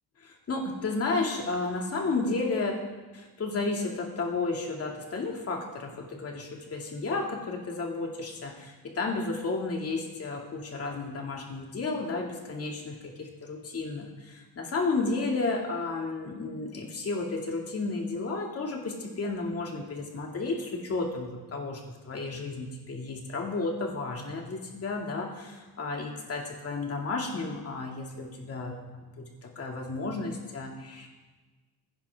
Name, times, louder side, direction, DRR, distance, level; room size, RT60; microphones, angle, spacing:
voice 1, 0.2-2.8 3.1-31.1, left 3 dB, 40° left, 1 dB, 2.3 m, -32 dB
21.0 x 10.5 x 3.5 m, 1.3 s
cardioid pair, 155°, 38 cm